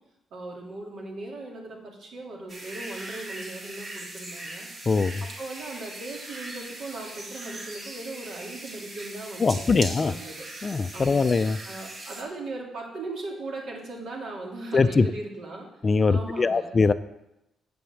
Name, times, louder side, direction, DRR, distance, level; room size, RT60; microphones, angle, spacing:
voice 1, 0.3-4.7 5.2-10.5 10.9-11.2 11.6-15.7 16.1-16.7, right 2 dB, 65° right, -1 dB, 2.7 m, -38 dB
sound 1, 2.5-12.2, right 2 dB, 45° right, 2.3 m, -40 dB
voice 2, 4.9-5.2 9.4-10.1 10.6-11.6 14.7-15.1 15.8-16.9, left 4 dB, 35° left, 13 dB, 0.4 m, -22 dB
7.8 x 7.0 x 7.2 m, 0.90 s
cardioid pair, 90°, 0 cm